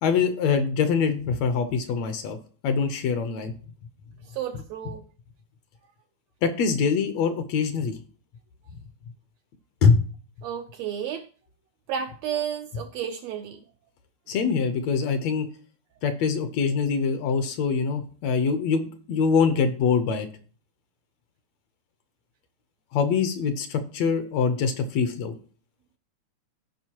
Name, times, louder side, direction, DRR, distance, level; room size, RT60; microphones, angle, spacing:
voice 1, 0.0-2.4 2.6-3.5 6.4-8.0 9.8-10.0 14.3-15.5 16.0-20.3 22.9-25.3, left 5 dB, 70° left, 1.9 m, -24 dB
voice 2, 4.2-5.0 10.4-11.3 11.9-13.6, right 8 dB, 80° right, 1.6 m, -32 dB
15.5 x 5.3 x 2.9 m
omnidirectional pair, 3.5 m